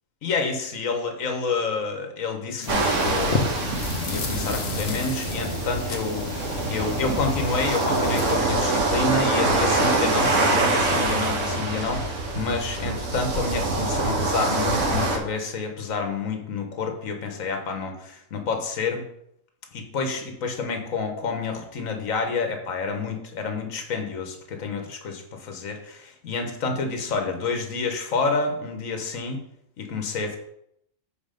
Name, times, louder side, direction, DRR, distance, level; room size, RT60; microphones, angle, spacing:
voice 1, 0.2-3.4 4.0-19.0 19.7-29.4 29.8-30.4, left 4 dB, 75° left, 5 dB, 1.5 m, -29 dB
sound 1, 2.6-8.3, left 4 dB, 50° left, 1.2 m, -32 dB
sound 2, 2.7-15.2, right 2 dB, 65° right, 1.5 m, -25 dB
7.6 x 4.7 x 5.1 m, 0.75 s
omnidirectional pair, 1.4 m